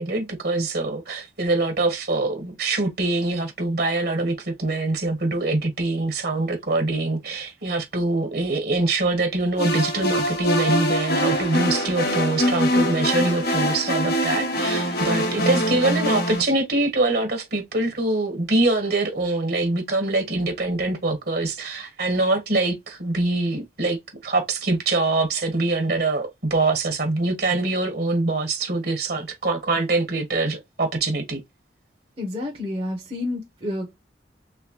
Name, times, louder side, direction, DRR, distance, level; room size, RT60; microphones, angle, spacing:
voice 1, 0.0-24.0 24.2-31.4, right 2 dB, 60° right, 1.6 m, -24 dB
sound 1, 9.6-16.4, equal, 60° left, 1.2 m, -23 dB
voice 2, 32.2-33.9, left 2 dB, 35° right, 1.0 m, -29 dB
3.5 x 3.0 x 3.2 m
head